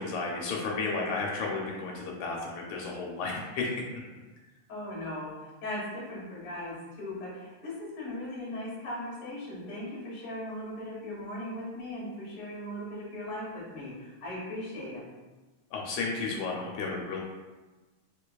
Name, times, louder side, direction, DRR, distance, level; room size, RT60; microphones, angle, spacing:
voice 1, 0.0-3.7 15.7-17.2, left 3 dB, 80° left, -2 dB, 1.8 m, -33 dB
voice 2, 4.7-15.0, left 1 dB, 50° left, -6 dB, 0.9 m, -38 dB
4.6 x 2.8 x 2.2 m, 1.2 s
omnidirectional pair, 3.4 m